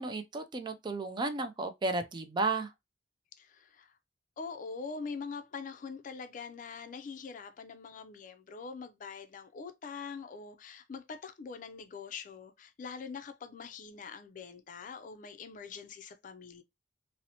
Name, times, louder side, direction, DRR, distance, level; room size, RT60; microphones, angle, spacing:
voice 1, 0.0-2.7, right 3 dB, 25° right, 0.3 m, -33 dB
voice 2, 3.4-4.0 4.4-16.6, left 5 dB, 45° left, 0.4 m, -44 dB
2.8 x 2.0 x 2.6 m
head